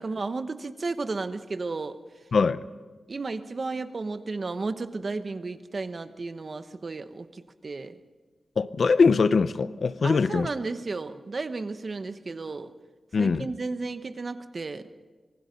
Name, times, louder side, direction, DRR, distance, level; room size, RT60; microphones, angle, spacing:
voice 1, 0.0-2.0 3.1-8.0 10.0-12.7 13.2-14.8, right 3 dB, 40° right, 10 dB, 1.0 m, -33 dB
voice 2, 2.3-2.6 8.6-10.5 13.1-13.5, left 4 dB, 60° left, 14 dB, 0.7 m, -22 dB
26.0 x 20.0 x 5.3 m, 1.4 s
wide cardioid pair, 130°, 0 cm